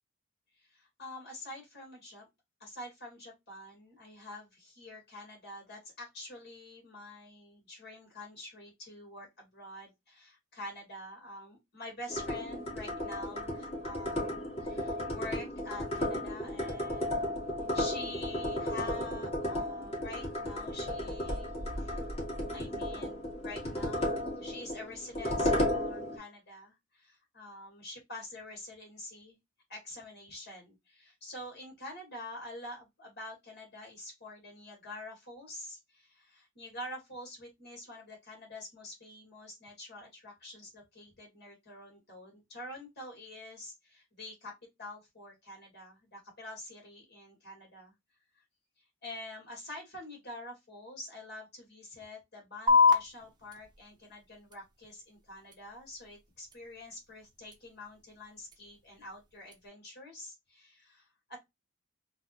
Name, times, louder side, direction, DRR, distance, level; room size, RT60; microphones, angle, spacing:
voice 1, 0.5-2.2 2.6-17.5 17.7-22.0 22.5-29.4 29.7-44.5 44.8-47.9 48.3-48.4 49.0-61.4, left 1 dB, 55° left, 2.2 m, -47 dB
sound 1, 12.1-26.2, left 1 dB, 30° left, 1.9 m, -34 dB
sound 2, 52.7-59.7, left 5 dB, 20° right, 0.8 m, -32 dB
3.9 x 2.7 x 2.9 m
head